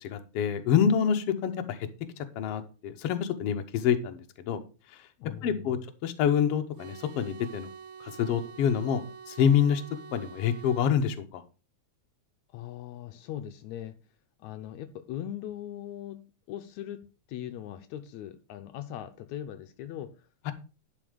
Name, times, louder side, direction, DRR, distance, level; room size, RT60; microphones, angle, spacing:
voice 1, 0.0-1.8 2.4-4.6 5.4-7.7 8.2-9.0 9.3-9.8 10.1-11.4 20.5-20.6, left 8 dB, 65° left, 7 dB, 1.8 m, -26 dB
voice 2, 5.2-5.7 12.5-14.0 14.4-20.3, left 11 dB, 80° left, 9 dB, 2.0 m, -40 dB
sound 1, 6.8-11.0, right 6 dB, 80° right, 2.2 m, -47 dB
11.0 x 5.5 x 5.0 m, 0.34 s
omnidirectional pair, 3.4 m